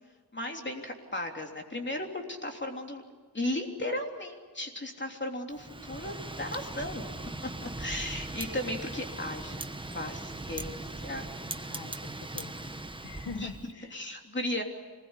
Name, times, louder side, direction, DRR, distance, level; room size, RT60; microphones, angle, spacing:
voice 1, 0.3-3.0 3.3-7.1 7.6-11.3 13.3-13.5 13.9-14.6, left 1 dB, 25° left, 2 dB, 3.4 m, -36 dB
Wind, 5.5-13.7, right 2 dB, 10° right, 1.1 m, -39 dB
voice 2, 11.6-14.0, left 5 dB, 90° left, 9 dB, 1.2 m, -45 dB
26.0 x 20.5 x 9.8 m, 1.5 s
wide cardioid pair, 105°, 40 cm